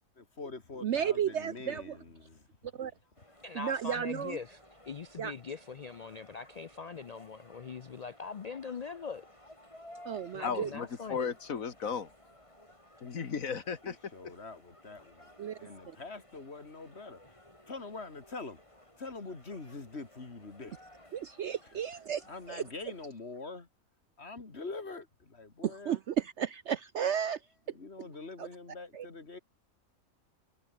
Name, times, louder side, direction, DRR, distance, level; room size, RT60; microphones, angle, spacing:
voice 1, 0.2-2.7 13.8-15.3 15.6-17.2 17.7-18.6 19.0-20.8 22.3-23.7 24.2-26.0 27.7-29.4, left 3 dB, 45° left, 3.0 m, -44 dB
voice 2, 0.8-2.0 2.7-2.9 3.5-4.4 5.2-5.3 10.0-10.7 15.4-15.6 15.9-16.0 21.1-22.6 25.6-27.4 28.4-28.5 28.9-29.1, right 8 dB, 60° right, 0.9 m, -33 dB
sound 1, 3.1-23.1, left 1 dB, 20° left, 5.7 m, -57 dB
voice 3, 3.4-4.6 4.9-9.2 10.3-11.3, left 5 dB, 90° left, 0.3 m, -42 dB
voice 4, 10.4-12.1 13.0-14.0, left 6 dB, 70° left, 2.0 m, -35 dB
omnidirectional pair, 1.5 m